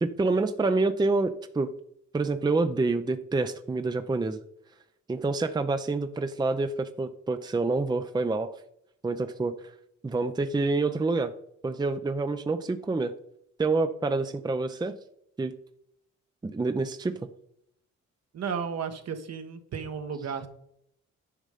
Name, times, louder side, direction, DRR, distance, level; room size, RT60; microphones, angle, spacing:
voice 1, 0.0-1.7 2.1-4.4 5.1-8.5 9.0-9.6 10.0-11.3 11.6-13.1 13.6-15.0 15.4-15.5 16.4-17.2, right 3 dB, 15° right, 9 dB, 0.6 m, -27 dB
voice 2, 18.3-20.5, right 6 dB, 60° right, 7 dB, 1.3 m, -33 dB
10.0 x 5.4 x 5.0 m, 0.71 s
cardioid pair, 90°, 30 cm